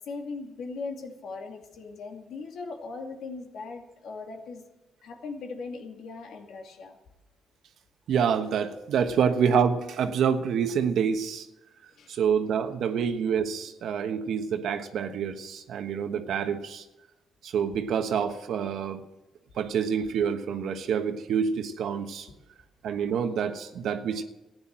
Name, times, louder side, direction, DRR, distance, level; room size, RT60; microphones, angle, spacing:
voice 1, 0.1-4.6 5.0-7.0 11.9-12.2 18.6-18.7 22.3-22.4, left 4 dB, 70° left, 2 dB, 2.4 m, -39 dB
voice 2, 8.1-11.5 12.1-16.8 17.4-19.1 19.5-22.3 22.8-24.2, right 7 dB, 70° right, 8 dB, 1.2 m, -27 dB
14.5 x 9.6 x 7.4 m, 1.0 s
cardioid pair, 90°, 0 cm